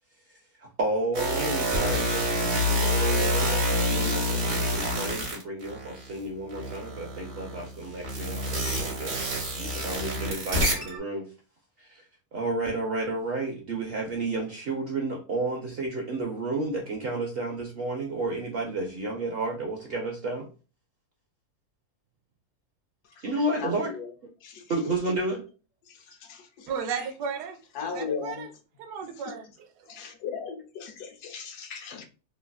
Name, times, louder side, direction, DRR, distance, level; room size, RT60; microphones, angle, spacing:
voice 1, 0.8-11.3 11.8-12.0 12.3-20.5 23.2-23.9 24.7-25.4, right 2 dB, 70° right, 0.5 m, -31 dB
sound 1, 1.1-6.1 6.5-11.0, equal, 45° right, 0.9 m, -27 dB
voice 2, 23.2-24.1 24.4-24.6 25.9-26.7 27.7-28.5 29.2-29.3 29.9-32.0, left 5 dB, 90° left, 1.2 m, -37 dB
voice 3, 26.7-27.6 27.9-28.5 28.8-29.7, right 6 dB, 90° right, 1.1 m, -34 dB
3.1 x 2.4 x 2.2 m
omnidirectional pair, 1.6 m